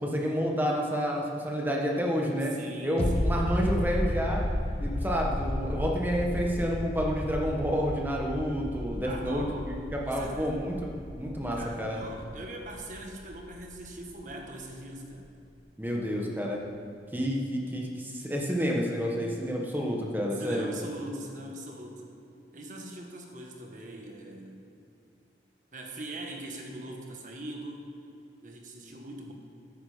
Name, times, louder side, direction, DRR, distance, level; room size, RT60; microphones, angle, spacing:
voice 1, 0.0-2.5 2.8-4.4 4.8-9.4 9.9-12.0 15.8-16.6 17.1-20.7, equal, 10° right, -1 dB, 1.6 m, -29 dB
voice 2, 2.5-3.3 9.0-9.7 10.1-10.5 11.5-15.3 20.3-22.0 22.5-24.6 25.7-27.9 28.4-29.3, right 1 dB, 45° right, 1 dB, 1.7 m, -41 dB
sound 1, 3.0-14.3 14.6-14.7, left 1 dB, 35° left, 0.8 m, -33 dB
13.0 x 10.0 x 5.1 m, 2.7 s
head